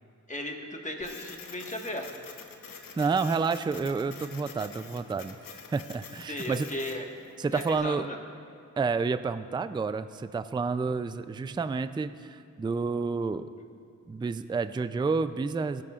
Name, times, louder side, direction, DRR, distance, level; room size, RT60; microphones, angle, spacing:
voice 1, 0.3-2.1 6.3-7.0 7.5-8.2, left 1 dB, 20° left, 1 dB, 1.5 m, -36 dB
Printer, 1.0-7.8, left 5 dB, 80° left, 0.9 m, -47 dB
voice 2, 3.0-5.4 5.7-6.7 7.4-8.1 8.8-13.5 14.1-15.8, right 4 dB, 15° right, 12 dB, 0.3 m, -29 dB
18.0 x 10.5 x 2.4 m, 2.4 s
cardioid pair, 55°, 33 cm